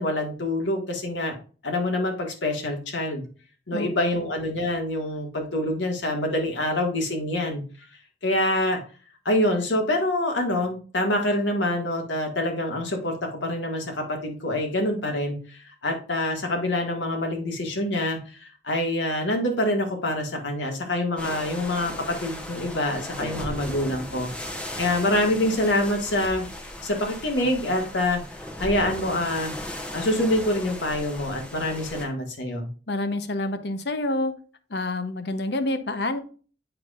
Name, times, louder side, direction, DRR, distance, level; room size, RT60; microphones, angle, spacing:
voice 1, 0.0-1.3 1.6-3.3 3.7-7.6 8.2-8.8 9.3-24.3 24.8-26.4 26.8-28.2 28.6-29.5 29.9-32.7, left 1 dB, 85° left, 2 dB, 1.8 m, -26 dB
sound 1, 21.2-32.1, left 1 dB, 5° left, 0.9 m, -37 dB
voice 2, 32.9-34.3 34.7-36.2, left 2 dB, 60° left, 9 dB, 0.8 m, -27 dB
7.8 x 5.8 x 2.4 m, 0.38 s
head